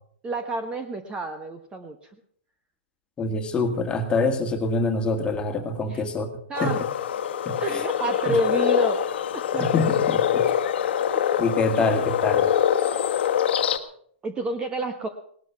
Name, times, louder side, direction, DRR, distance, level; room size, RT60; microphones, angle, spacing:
voice 1, 0.2-2.0 5.9-6.0 6.5-6.8 7.6-9.0 9.3-9.7 11.1-11.4 11.8-11.9 14.2-15.1, right 2 dB, 15° right, 7 dB, 1.1 m, -29 dB
voice 2, 3.2-6.3 6.6-6.8 7.5-7.8 8.3-8.4 9.5-10.5 11.4-12.5, left 3 dB, 15° left, 5 dB, 2.0 m, -25 dB
sound 1, 6.5-13.8, left 9 dB, 60° left, 1.5 m, -24 dB
18.5 x 12.5 x 5.8 m, 0.63 s
hypercardioid pair, 140°, 6 cm